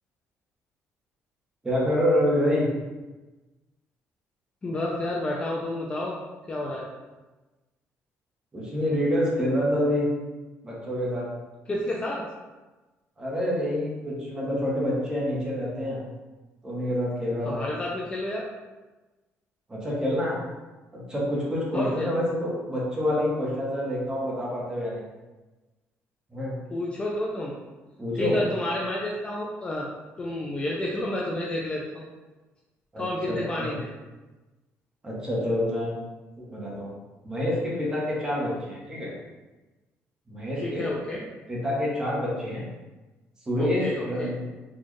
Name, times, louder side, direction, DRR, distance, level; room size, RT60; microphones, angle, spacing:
voice 1, 1.6-2.7 8.5-10.0 10.6-11.3 13.2-16.0 16.6-17.6 19.7-20.4 20.9-25.0 26.3-26.5 28.0-28.4 32.9-33.7 35.0-35.9 36.4-36.9 37.2-39.1 40.3-40.9 41.5-42.6 43.5-44.3, equal, 15° right, -5 dB, 1.0 m, -27 dB
voice 2, 4.6-6.1 6.5-6.9 11.7-12.2 17.4-18.4 21.7-22.1 26.7-27.6 28.2-29.9 30.2-32.0 33.0-33.9 40.6-41.2 43.6-44.3, left 1 dB, 20° left, -3 dB, 0.4 m, -30 dB
4.2 x 2.3 x 3.1 m, 1.2 s
cardioid pair, 160°, 5 cm